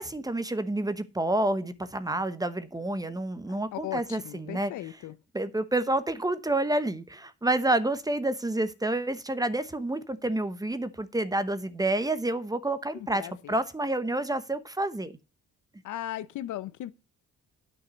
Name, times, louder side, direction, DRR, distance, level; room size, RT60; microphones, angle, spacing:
voice 1, 0.0-5.0 5.3-15.1, right 1 dB, 10° right, 1.0 m, -29 dB
voice 2, 3.7-5.1 13.2-13.6 15.8-16.9, left 13 dB, 80° left, 0.9 m, -37 dB
9.6 x 5.6 x 6.9 m
cardioid pair, 90°, 30 cm